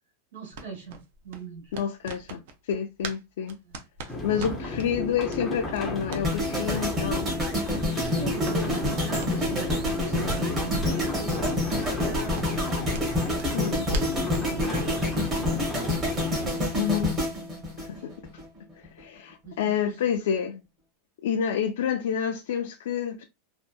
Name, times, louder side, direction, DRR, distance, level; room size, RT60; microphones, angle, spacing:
voice 1, 0.3-1.7 3.6-3.8 8.0-12.6 13.2-13.7 14.3-15.7 17.3-17.7 17.9-18.1 19.4-20.0, right 6 dB, 75° right, 1.1 m, -40 dB
sound 1, 0.5-3.2 3.5-4.9 5.3-5.4 5.7-6.3 6.6-6.8 7.1-7.2 7.5-7.7 8.0-10.0 10.3-11.0 11.3-11.5 11.8-11.9 12.3-14.5, right 1 dB, 60° right, 0.5 m, -37 dB
voice 2, 1.7-2.4 2.7-3.6 4.2-7.3 13.5-13.9 16.8-17.1 17.9-18.1 18.8-20.6 21.2-23.2, left 8 dB, 75° left, 0.4 m, -28 dB
sound 2, 4.1-16.6, left 2 dB, 10° left, 0.5 m, -34 dB
sound 3, 6.2-18.4 18.7-19.0, left 1 dB, 20° right, 0.8 m, -28 dB
2.6 x 2.1 x 2.2 m
supercardioid pair, 175°, 0 cm